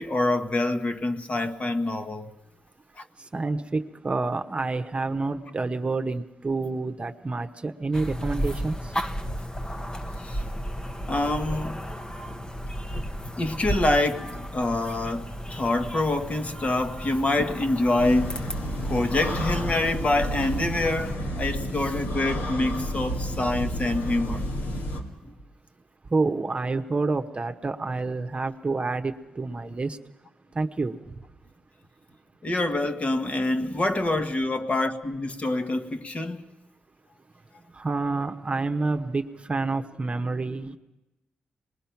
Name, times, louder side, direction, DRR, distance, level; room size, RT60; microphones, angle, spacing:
voice 1, 0.0-2.3 3.0-3.1 10.1-10.4 11.1-11.8 13.4-18.4 18.8-24.5 25.2-25.3 32.4-36.5, left 2 dB, 40° left, 1.5 m, -26 dB
voice 2, 3.3-8.8 26.1-30.0 30.5-31.1 37.7-40.8, right 3 dB, 35° right, 1.0 m, -28 dB
sound 1, 7.9-21.1, equal, 25° left, 1.1 m, -34 dB
sound 2, 18.0-25.0, equal, 90° left, 2.4 m, -31 dB
25.5 x 20.5 x 5.9 m
cardioid pair, 65°, 4 cm